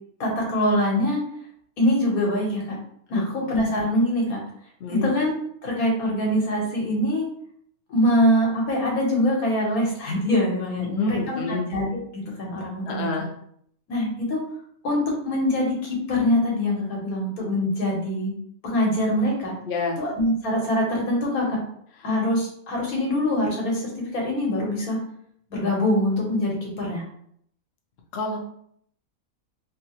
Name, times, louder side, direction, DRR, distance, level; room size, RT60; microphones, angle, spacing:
voice 1, 0.2-1.2 1.8-2.8 3.1-4.4 4.9-5.3 5.6-7.2 7.9-11.8 12.1-13.1 13.9-14.4 14.8-18.3 18.6-19.6 20.0-21.6 22.0-25.0 25.5-27.0, left 1 dB, 75° left, -2 dB, 1.5 m, -24 dB
voice 2, 4.8-5.1 10.8-11.7 12.9-13.3 19.7-20.0 28.1-28.4, left 4 dB, 60° left, 1 dB, 0.7 m, -28 dB
3.4 x 2.7 x 2.9 m, 0.67 s
omnidirectional pair, 1.5 m